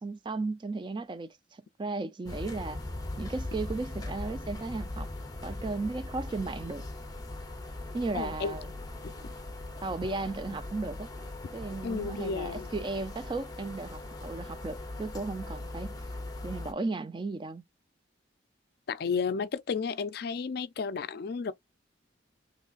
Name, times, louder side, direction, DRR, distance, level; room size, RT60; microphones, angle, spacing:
voice 1, 0.0-2.8 3.2-5.1 5.4-6.9 7.9-8.7 9.8-11.1 11.5-16.1 16.4-17.6, right 3 dB, 25° right, 0.3 m, -35 dB
sound 1, 2.3-16.7, left 2 dB, 20° left, 0.7 m, -40 dB
voice 2, 8.1-8.6 9.0-9.3 11.8-12.7 18.9-21.5, left 5 dB, 55° left, 0.4 m, -32 dB
3.8 x 3.1 x 2.4 m
head